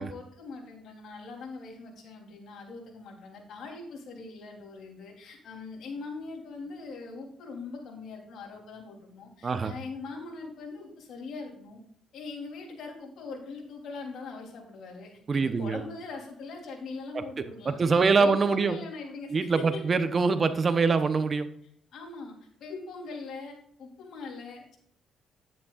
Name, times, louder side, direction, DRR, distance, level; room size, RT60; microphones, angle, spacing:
voice 1, 0.0-11.8 12.1-19.8 21.9-24.8, left 4 dB, 70° left, 0 dB, 3.3 m, -42 dB
voice 2, 9.4-9.7 15.3-15.8 17.1-17.2 17.6-18.8 19.3-21.5, right 4 dB, 40° right, 11 dB, 0.9 m, -24 dB
10.5 x 9.8 x 2.5 m, 0.63 s
cardioid pair, 90°, 0 cm